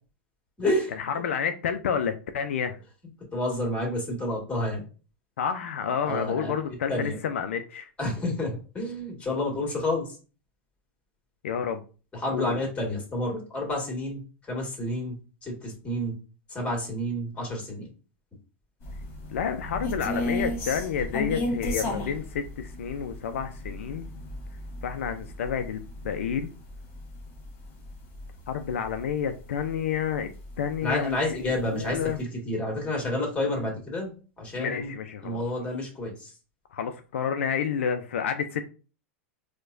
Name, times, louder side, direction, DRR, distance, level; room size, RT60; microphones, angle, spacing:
voice 1, 0.6-0.9 3.3-4.8 6.1-6.5 6.9-7.2 8.0-10.2 12.1-16.1 16.5-17.9 30.8-34.9 35.2-36.3, left 1 dB, 15° left, 1.7 m, -30 dB
voice 2, 1.2-2.8 5.4-7.9 11.4-11.8 12.3-12.6 19.3-24.1 24.8-26.5 28.5-30.3 30.6-31.1 31.7-32.2 34.6-35.4 36.7-38.6, left 7 dB, 75° left, 0.3 m, -29 dB
sound 1, 18.8-29.2 29.6-29.7 30.2-30.9 31.3-31.4 31.8-32.2, left 1 dB, 40° left, 1.3 m, -34 dB
4.5 x 2.2 x 2.5 m
hypercardioid pair, 100°, 7 cm